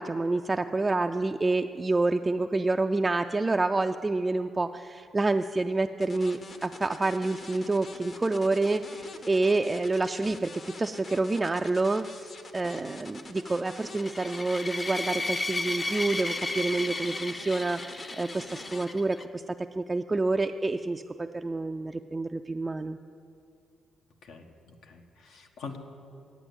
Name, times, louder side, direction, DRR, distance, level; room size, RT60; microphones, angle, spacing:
voice 1, 0.0-23.0, right 2 dB, 20° right, 6 dB, 0.3 m, -28 dB
sound 1, 6.0-18.9, left 3 dB, 45° left, 0.9 m, -45 dB
sound 2, 14.0-19.2, left 2 dB, 25° left, 0.6 m, -34 dB
voice 2, 24.2-25.8, left 5 dB, 75° left, 4 dB, 1.2 m, -44 dB
10.5 x 8.3 x 8.0 m, 2.6 s
cardioid pair, 90°, 0 cm